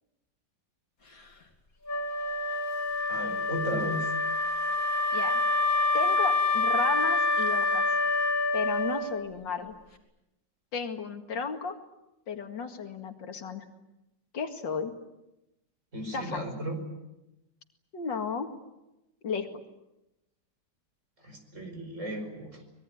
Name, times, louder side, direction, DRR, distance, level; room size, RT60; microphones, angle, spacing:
Wind instrument woodwind instrument, 1.8-9.4, left 2 dB, 50° left, 3.2 m, -27 dB
voice 1, 3.1-4.1 15.9-16.8 21.2-22.6, right 1 dB, 40° right, 5 dB, 5.5 m, -35 dB
voice 2, 5.1-5.4 5.9-7.8 8.5-9.7 10.7-11.8 12.3-13.6 14.3-14.9 16.1-16.5 17.9-18.5 19.2-19.5, left 5 dB, 85° left, 7 dB, 2.7 m, -34 dB
24.5 x 21.5 x 9.9 m, 0.94 s
omnidirectional pair, 1.9 m